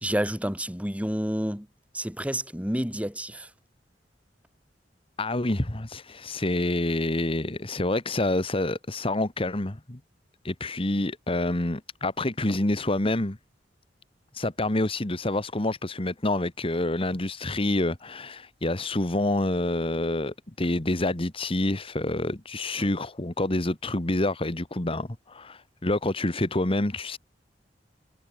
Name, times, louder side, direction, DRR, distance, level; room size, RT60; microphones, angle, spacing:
voice 1, 0.0-1.7 1.9-3.5 22.8-22.9, equal, 10° right, 4.6 m, -29 dB
voice 2, 5.2-10.0 10.4-13.4 14.3-27.2, left 2 dB, 30° left, 1.6 m, -27 dB
head